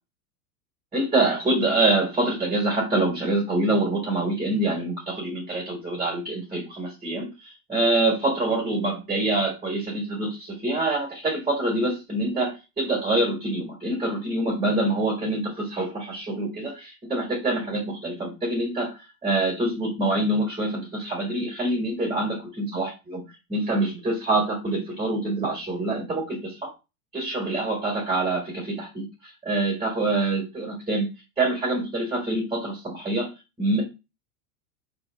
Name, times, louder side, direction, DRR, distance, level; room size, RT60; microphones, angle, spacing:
voice 1, 0.9-26.7 27.1-31.1 31.4-33.3 33.6-33.8, right 2 dB, 10° right, -2 dB, 1.6 m, -26 dB
3.9 x 3.3 x 3.3 m, 0.27 s
hypercardioid pair, 110°, 47 cm